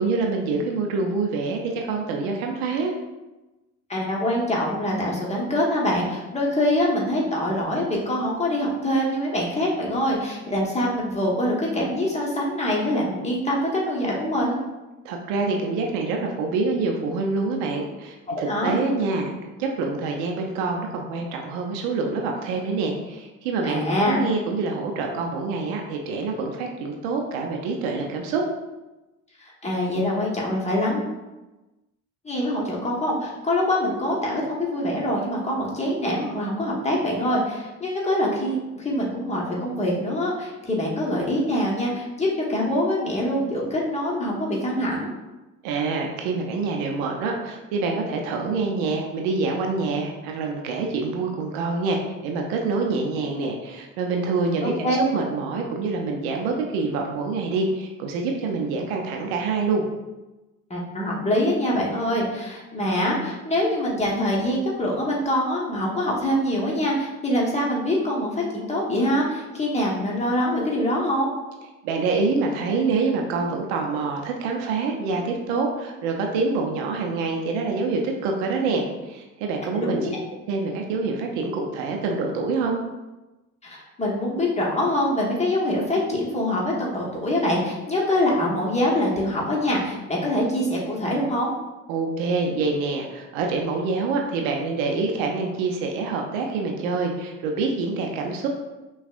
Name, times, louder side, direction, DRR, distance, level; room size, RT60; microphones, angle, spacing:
voice 1, 0.0-2.9 15.0-28.4 45.6-59.8 71.8-80.1 80.5-82.8 91.9-98.5, right 4 dB, 60° right, 1 dB, 0.7 m, -26 dB
voice 2, 3.9-14.6 18.3-18.8 23.6-24.2 29.4-31.1 32.2-45.1 54.6-55.1 60.7-71.3 79.8-80.1 83.6-91.5, left 1 dB, 15° left, -4 dB, 1.2 m, -24 dB
5.8 x 2.4 x 2.4 m, 1.1 s
figure-of-eight pair, 55°, 40 cm